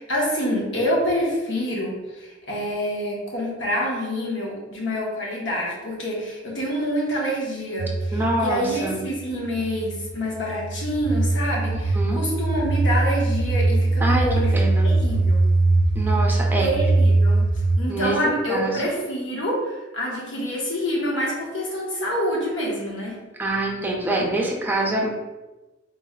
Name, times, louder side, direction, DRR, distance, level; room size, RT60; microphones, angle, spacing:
voice 1, 0.0-14.5 14.8-15.4 16.6-17.4 17.8-23.2, equal, 80° left, -3 dB, 1.1 m, -27 dB
sound 1, 7.8-17.8, right 2 dB, 75° right, 0.5 m, -21 dB
voice 2, 8.1-9.0 11.7-12.2 14.0-14.3 14.5-14.9 15.9-16.7 17.9-18.1 18.5-18.8 23.4-25.1, right 2 dB, 10° right, -1 dB, 0.6 m, -25 dB
3.9 x 2.1 x 3.6 m, 1.1 s
head